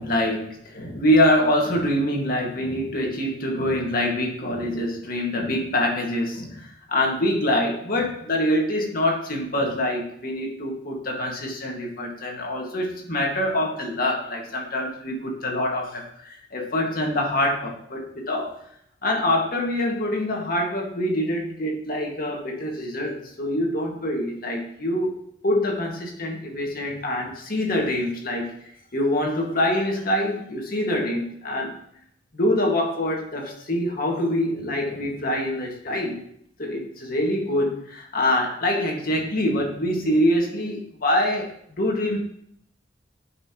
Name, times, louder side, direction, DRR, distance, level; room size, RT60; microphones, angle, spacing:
voice 1, 0.0-18.5 19.0-25.1 25.4-28.5 28.9-31.8 32.3-36.2 36.6-42.2, left 1 dB, 55° left, 0 dB, 1.9 m, -25 dB
14.0 x 5.8 x 3.0 m, 0.69 s
head